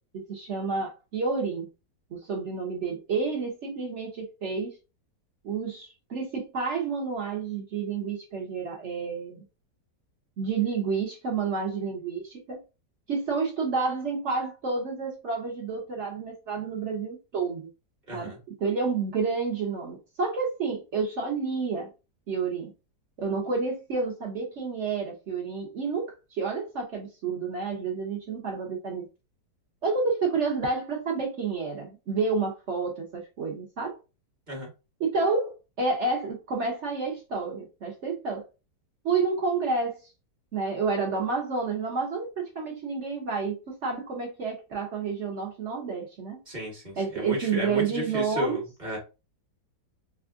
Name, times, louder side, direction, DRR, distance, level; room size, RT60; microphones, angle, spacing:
voice 1, 0.0-1.7 2.1-4.7 5.4-9.4 10.4-12.6 13.1-17.7 18.1-21.9 22.3-22.7 23.2-29.1 29.8-34.0 35.0-38.4 39.0-40.0 40.5-46.4 47.0-48.6, right 4 dB, 55° right, 0.8 m, -30 dB
voice 2, 18.1-18.4 34.5-34.7 46.5-49.0, equal, 30° right, 1.1 m, -33 dB
4.3 x 2.3 x 2.4 m
omnidirectional pair, 1.9 m